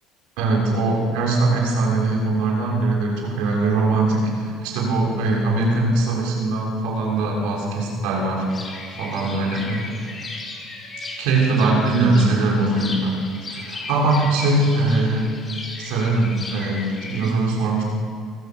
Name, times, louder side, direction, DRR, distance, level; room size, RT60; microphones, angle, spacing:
voice 1, 0.4-8.5 8.9-9.9 11.2-15.4 15.8-17.8, right 2 dB, 70° right, -1 dB, 6.0 m, -21 dB
sound 1, 8.5-17.3, left 3 dB, 30° left, 5.4 m, -36 dB
29.5 x 15.0 x 7.2 m, 2.4 s
hypercardioid pair, 60°, 0 cm